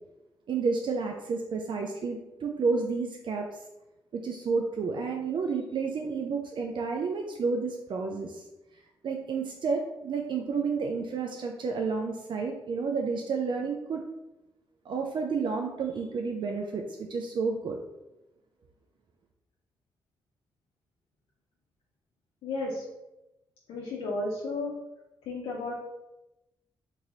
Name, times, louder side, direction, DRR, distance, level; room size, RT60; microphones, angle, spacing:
voice 1, 0.5-3.6 4.1-8.4 9.0-14.0 14.9-17.8, right 4 dB, 60° right, 2 dB, 0.4 m, -30 dB
voice 2, 22.4-22.8 23.7-24.7 25.2-25.7, left 2 dB, 85° left, -4 dB, 0.6 m, -33 dB
3.0 x 2.7 x 3.9 m, 0.96 s
cardioid pair, 60°, 9 cm